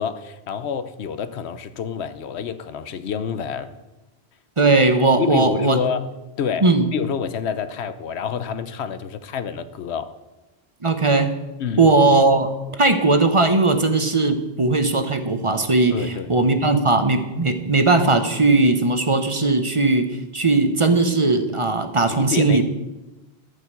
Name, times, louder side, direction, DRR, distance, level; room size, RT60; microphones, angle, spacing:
voice 1, 0.0-3.7 5.2-6.1 6.4-10.1 11.6-11.9 15.9-16.3 22.1-22.6, left 7 dB, 90° left, 12 dB, 1.0 m, -28 dB
voice 2, 4.6-5.8 6.6-6.9 10.8-11.4 11.8-12.5 12.8-20.1 20.3-22.6, right 3 dB, 30° right, 8 dB, 0.9 m, -18 dB
13.0 x 5.5 x 8.2 m, 1.1 s
omnidirectional pair, 1.1 m